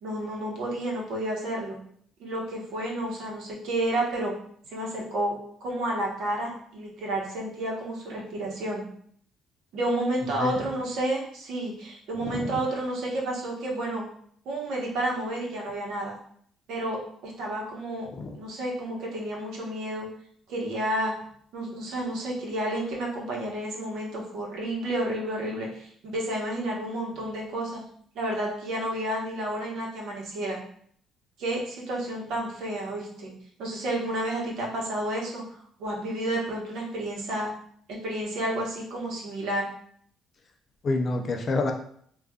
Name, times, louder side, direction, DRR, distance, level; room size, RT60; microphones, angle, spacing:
voice 1, 0.0-1.8 2.2-4.3 4.7-5.3 5.6-8.8 9.7-14.0 14.4-16.1 16.7-18.1 18.3-20.1 20.5-21.1 21.5-27.8 28.1-30.6 31.4-33.3 33.6-35.4 35.8-37.5 38.0-39.7, right 1 dB, 65° right, -2 dB, 1.0 m, -30 dB
voice 2, 12.2-12.6 18.1-18.4 40.8-41.7, left 3 dB, 30° left, 3 dB, 0.3 m, -28 dB
4.8 x 2.4 x 2.3 m, 0.62 s
cardioid pair, 180°, 0 cm